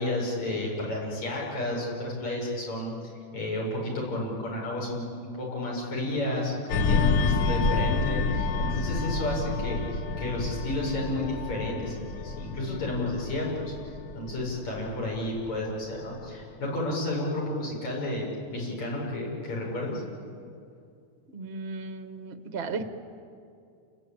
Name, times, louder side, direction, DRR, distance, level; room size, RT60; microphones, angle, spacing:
voice 1, 0.0-13.7 14.1-20.0, left 1 dB, 65° left, -3 dB, 7.4 m, -31 dB
sound 1, 6.7-15.7 16.1-16.3, left 4 dB, 85° left, 0.9 m, -29 dB
voice 2, 21.3-22.8, right 4 dB, 65° right, 8 dB, 0.6 m, -35 dB
29.5 x 20.5 x 8.8 m, 2.5 s
omnidirectional pair, 3.4 m